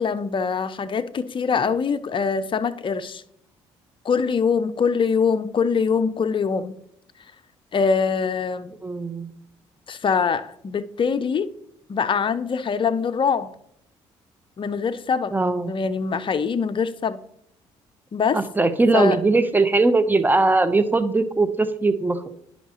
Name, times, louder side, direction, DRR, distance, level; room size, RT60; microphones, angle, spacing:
voice 1, 0.0-3.2 4.0-6.8 7.7-8.7 9.9-11.5 11.9-13.5 14.6-15.3 15.6-17.2 18.1-18.4 18.9-19.2, left 6 dB, 40° left, 0.6 m, -23 dB
voice 2, 8.8-9.3 15.3-15.7 18.3-22.3, right 3 dB, 15° right, 0.9 m, -20 dB
10.5 x 5.5 x 3.0 m
hypercardioid pair, 50°, 14 cm